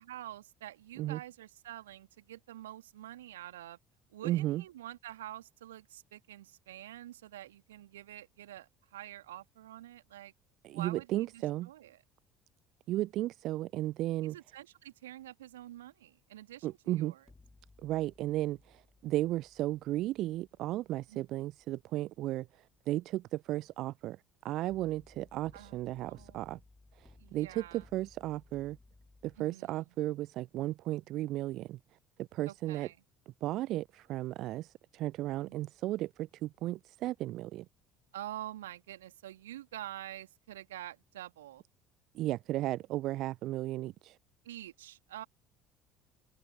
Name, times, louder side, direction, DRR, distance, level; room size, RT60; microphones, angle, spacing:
voice 1, 0.0-3.8 4.1-10.3 10.7-12.0 14.2-17.2 21.1-21.2 25.5-26.5 27.2-27.9 29.4-29.8 32.5-33.0 35.5-35.7 38.1-41.6 44.4-45.2, right 13 dB, 75° right, 2.3 m, -47 dB
voice 2, 4.2-4.6 10.6-11.7 12.9-14.4 16.6-17.1 17.8-22.5 22.9-24.2 24.4-26.6 27.0-28.8 29.2-31.8 32.2-32.9 33.4-37.7 42.1-44.2, right 15 dB, 55° right, 0.4 m, -34 dB
sound 1, 17.2-22.3 24.7-29.4, left 3 dB, 15° left, 3.2 m, -62 dB
open air
figure-of-eight pair, 55°, 0 cm